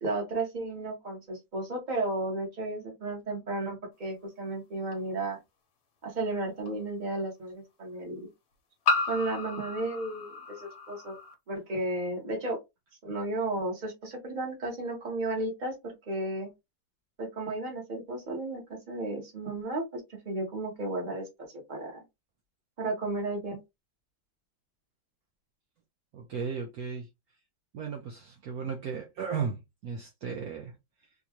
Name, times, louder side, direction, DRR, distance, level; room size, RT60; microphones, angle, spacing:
voice 1, 0.0-5.4 6.0-8.3 9.1-11.2 11.5-12.6 13.0-16.5 17.2-21.2 21.7-22.0 22.8-23.6, right 2 dB, 30° right, 1.3 m, -33 dB
sound 1, 4.9-5.0 6.7-6.8 8.9-11.3, left 3 dB, 60° left, 1.3 m, -32 dB
voice 2, 26.1-27.1 27.7-30.8, right 6 dB, 65° right, 1.1 m, -35 dB
3.6 x 2.8 x 2.9 m
omnidirectional pair, 1.9 m